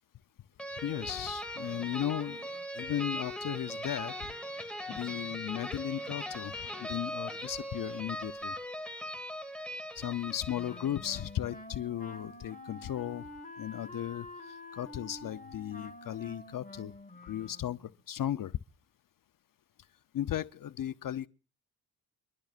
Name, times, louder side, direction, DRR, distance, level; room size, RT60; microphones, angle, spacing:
sound 1, 0.6-11.3, equal, 5° left, 2.2 m, -40 dB
voice 1, 0.8-2.5 2.8-4.3 5.0-6.5 6.8-8.5 9.9-13.3 13.6-16.9 17.2-18.6 20.1-21.3, left 11 dB, 55° left, 0.6 m, -36 dB
Wind instrument woodwind instrument, 10.5-17.9, left 2 dB, 20° left, 1.5 m, -48 dB
24.0 x 12.0 x 2.4 m
cardioid pair, 65°, 39 cm